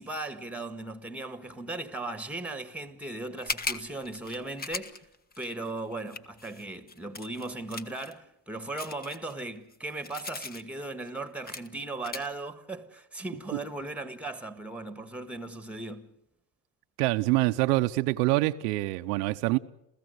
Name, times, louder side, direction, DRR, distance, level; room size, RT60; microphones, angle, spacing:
voice 1, 0.0-5.0 5.4-16.1, right 2 dB, 5° right, 1.6 m, -37 dB
sound 1, 3.4-8.1 8.8-10.6 11.1-11.2 11.5-11.7 12.0-12.3, left 4 dB, 20° left, 1.0 m, -38 dB
voice 2, 17.0-19.6, right 20 dB, 90° right, 0.9 m, -25 dB
28.0 x 15.5 x 8.0 m
supercardioid pair, 115°, 46 cm